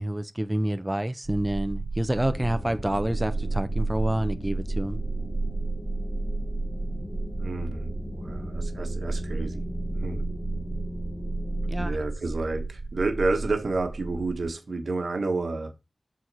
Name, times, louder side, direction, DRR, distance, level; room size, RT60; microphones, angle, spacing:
voice 1, 0.0-5.0 11.7-12.0, right 1 dB, 15° right, 0.6 m, -28 dB
sound 1, 1.2-14.5, right 2 dB, 45° right, 1.2 m, -32 dB
sound 2, 2.2-11.9, left 1 dB, 35° left, 1.0 m, -40 dB
voice 2, 7.4-9.7 10.0-10.3 11.8-15.8, right 3 dB, 85° right, 1.3 m, -30 dB
6.4 x 4.2 x 6.1 m
wide cardioid pair, 60°, 0 cm